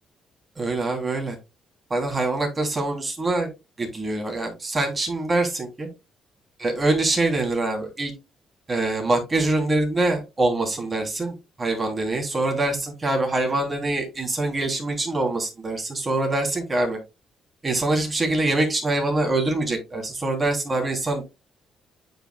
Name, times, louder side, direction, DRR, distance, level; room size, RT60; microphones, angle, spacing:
voice 1, 0.6-1.4 1.9-3.5 3.8-5.9 6.6-8.1 8.7-17.0 17.6-21.2, right 2 dB, 25° right, 2 dB, 3.0 m, -24 dB
8.9 x 5.4 x 2.2 m, 0.24 s
cardioid pair, 90°, 0 cm